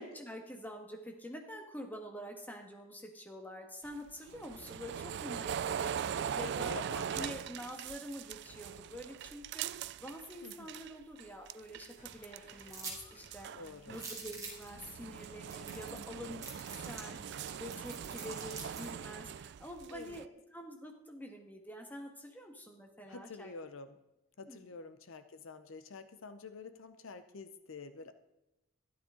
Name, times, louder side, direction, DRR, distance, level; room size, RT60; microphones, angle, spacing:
voice 1, 0.0-6.7 7.1-23.5 24.5-24.7, equal, 10° left, 3 dB, 1.5 m, -47 dB
sound 1, 3.8-10.9 11.2-12.8 13.1-20.2, right 8 dB, 55° right, 0.3 m, -41 dB
voice 2, 6.4-7.3 10.4-10.7 13.6-14.0 15.9-16.1 19.9-20.2 23.0-24.0 24.4-28.1, left 4 dB, 70° left, 10 dB, 0.7 m, -48 dB
sound 2, 12.0-18.5, right 1 dB, 35° left, 2.9 m, -60 dB
sound 3, 12.7-13.0 13.3-13.4 13.9-14.7 15.2-15.3 15.5-16.1 16.4-18.9, right 4 dB, 15° right, 2.6 m, -45 dB
13.0 x 11.5 x 3.8 m, 0.95 s
head